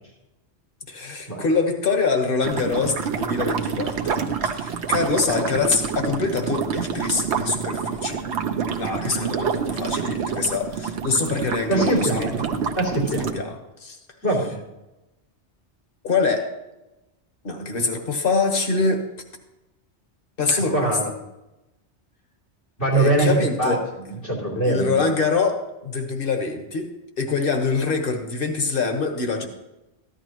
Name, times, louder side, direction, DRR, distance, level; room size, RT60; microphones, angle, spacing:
voice 1, 0.9-4.1 4.4-8.2 8.8-12.3 13.3-14.0 16.0-16.6 17.4-19.1 20.4-20.9 22.9-23.8 24.7-29.5, left 4 dB, 55° left, 5 dB, 1.5 m, -24 dB
sound 1, 2.4-13.3, right 6 dB, 75° right, 1.1 m, -27 dB
voice 2, 11.7-13.4 14.2-14.6 20.5-21.1 22.8-25.1, right 2 dB, 85° left, -2 dB, 3.5 m, -23 dB
14.5 x 11.5 x 3.0 m, 0.98 s
omnidirectional pair, 1.1 m